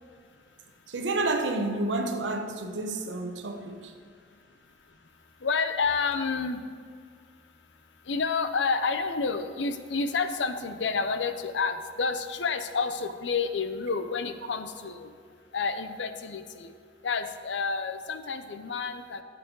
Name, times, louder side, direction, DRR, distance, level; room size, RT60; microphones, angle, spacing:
voice 1, 0.9-3.9, right 2 dB, 90° right, 0.9 m, -30 dB
voice 2, 5.4-6.6 8.1-15.1 15.5-16.7 17.0-19.2, left 4 dB, 80° left, 0.7 m, -29 dB
13.5 x 7.6 x 3.9 m
head